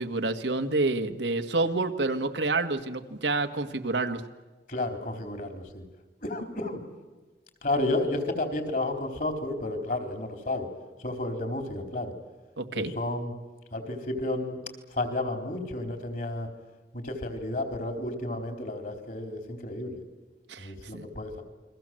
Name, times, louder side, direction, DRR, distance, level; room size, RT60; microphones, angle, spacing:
voice 1, 0.0-4.2 12.6-12.9 20.5-21.1, right 3 dB, 90° right, 7 dB, 1.7 m, -28 dB
voice 2, 4.7-5.8 6.2-6.9 7.6-10.7 11.0-12.1 12.7-13.3 13.7-14.6 14.9-16.5 16.9-20.0 20.6-21.4, left 2 dB, 50° left, 6 dB, 4.0 m, -32 dB
29.5 x 23.0 x 7.8 m, 1.2 s
head